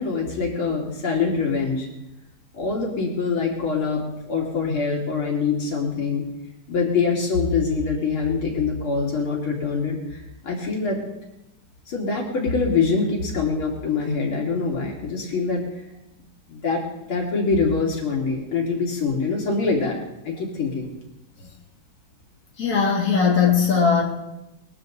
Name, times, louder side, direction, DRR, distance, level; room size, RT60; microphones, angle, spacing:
voice 1, 0.0-1.9 2.5-6.3 6.7-11.0 11.9-15.6 16.5-20.0 20.2-20.9, left 4 dB, 80° left, -1 dB, 3.7 m, -24 dB
voice 2, 22.6-24.0, left 6 dB, 45° left, -2 dB, 3.3 m, -19 dB
21.5 x 14.5 x 4.0 m, 0.90 s
omnidirectional pair, 2.3 m